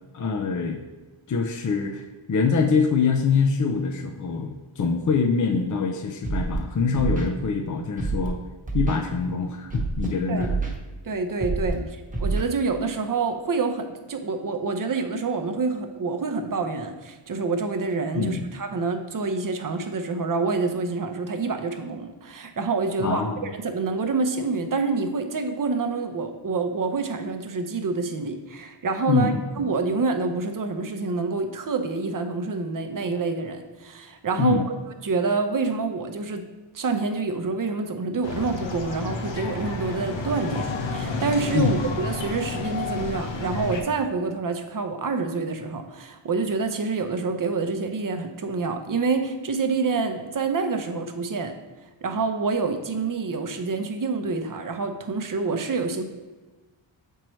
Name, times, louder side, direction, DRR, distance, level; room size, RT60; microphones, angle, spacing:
voice 1, 0.1-0.8 1.3-8.4 8.7-10.5 11.8-11.9 18.1-18.5 23.0-23.5 29.1-29.7 34.4-34.7 41.5-41.8, left 5 dB, 40° left, 4 dB, 0.5 m, -24 dB
Scratching (performance technique), 6.2-6.6 7.0-7.3 8.0-8.3 8.7-9.0 9.7-10.1 10.4-10.7 11.4-11.7 12.1-12.4, right 3 dB, 15° right, 1.0 m, -26 dB
voice 2, 11.0-11.8 12.2-34.7 35.0-36.4 36.7-51.5 52.0-56.0, right 4 dB, 40° right, 6 dB, 0.7 m, -27 dB
sound 1, 38.2-43.8, left 3 dB, 65° left, 0.9 m, -31 dB
7.4 x 4.5 x 3.1 m, 1.2 s
wide cardioid pair, 105°, 49 cm